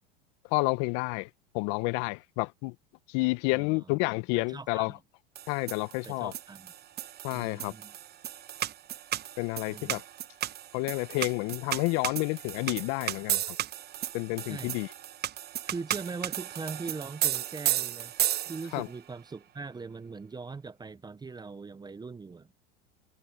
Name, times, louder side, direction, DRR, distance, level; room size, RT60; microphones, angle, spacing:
voice 1, 0.5-1.3 1.5-2.7 3.1-5.0 5.5-6.3 7.2-7.7 9.4-10.0 10.7-13.6 14.1-14.9 18.7-18.9, left 26 dB, 55° left, 1.3 m, -30 dB
voice 2, 4.4-5.0 6.0-6.7 7.3-7.9 9.7-10.0 14.5-14.8 15.7-18.1 18.5-22.5, right 4 dB, 15° right, 0.8 m, -41 dB
sound 1, 5.4-18.9, right 12 dB, 35° right, 1.1 m, -34 dB
hypercardioid pair, 95°, 30 cm